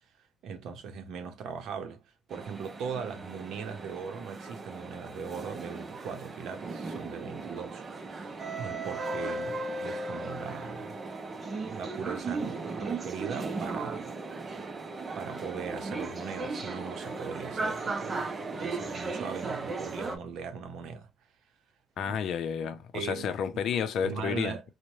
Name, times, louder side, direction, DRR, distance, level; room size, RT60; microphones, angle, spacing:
voice 1, 0.4-2.0 2.3-7.8 8.1-11.0 11.6-14.1 15.1-21.1 22.0-22.2 22.9-23.3 24.0-24.6, right 6 dB, 85° right, 0.7 m, -39 dB
sound 1, 2.3-20.2, right 3 dB, 35° right, 0.6 m, -36 dB
voice 2, 22.0-24.5, left 7 dB, 75° left, 0.5 m, -31 dB
3.0 x 2.1 x 2.6 m
cardioid pair, 105°, 0 cm